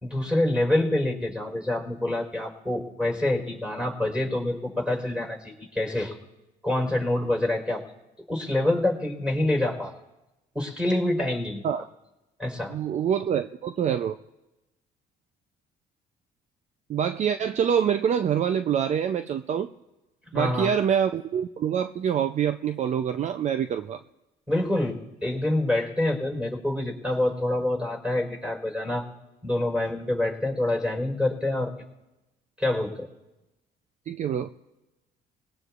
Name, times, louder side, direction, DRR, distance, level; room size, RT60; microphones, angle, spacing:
voice 1, 0.0-6.2 6.6-7.8 8.3-9.9 10.5-11.6 12.4-12.7 20.3-20.7 24.5-29.0 29.4-31.7 32.6-33.1, left 1 dB, 5° right, 0 dB, 4.4 m, -26 dB
voice 2, 12.7-14.2 16.9-19.7 20.3-24.0 34.1-34.5, right 8 dB, 45° right, 9 dB, 0.5 m, -25 dB
26.5 x 20.5 x 2.5 m, 1.0 s
cardioid pair, 110°, 17 cm